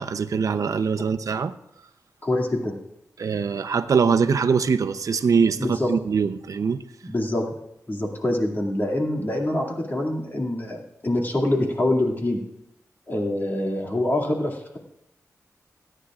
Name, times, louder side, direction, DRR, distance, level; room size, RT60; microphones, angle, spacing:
voice 1, 0.0-1.5 3.2-6.8, right 5 dB, 70° right, 0.7 m, -23 dB
voice 2, 2.2-2.8 5.6-5.9 7.0-7.5 7.9-12.4 13.1-14.8, left 1 dB, 35° left, 2.4 m, -25 dB
29.5 x 10.0 x 2.5 m
wide cardioid pair, 105°, 6 cm